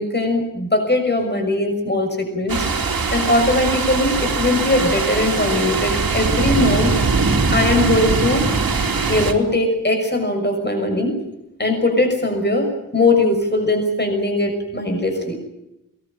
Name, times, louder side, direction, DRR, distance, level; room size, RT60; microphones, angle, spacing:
voice 1, 0.0-6.9 7.5-8.4 9.1-11.2 11.6-12.7 12.9-15.4, left 2 dB, 30° left, 4 dB, 6.3 m, -20 dB
sound 1, 2.5-9.3, right 4 dB, 85° right, 3.0 m, -21 dB
22.5 x 20.5 x 8.9 m, 0.88 s
wide cardioid pair, 80°, 34 cm